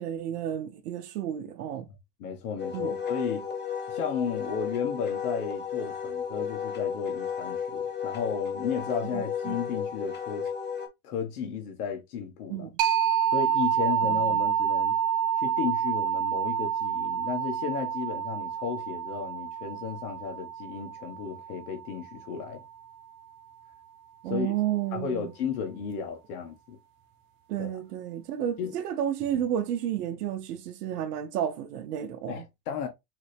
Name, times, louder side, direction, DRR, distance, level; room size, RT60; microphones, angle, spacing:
voice 1, 0.0-1.9 2.7-3.0 9.1-9.6 12.5-12.7 14.1-14.4 24.2-25.3 27.5-32.5, right 10 dB, 85° right, 0.7 m, -32 dB
voice 2, 2.2-3.4 3.9-10.5 11.0-12.7 13.3-15.0 15.4-22.6 24.3-24.5 24.9-26.8 27.6-27.7 28.6-28.8 29.3-29.4 32.3-32.9, left 6 dB, 75° left, 1.4 m, -34 dB
Wind instrument woodwind instrument, 2.6-10.9, left 7 dB, 25° left, 1.3 m, -33 dB
sound 1, 12.8-22.2, right 9 dB, 50° right, 0.9 m, -28 dB
4.0 x 3.3 x 3.4 m
supercardioid pair, 105°, 45 cm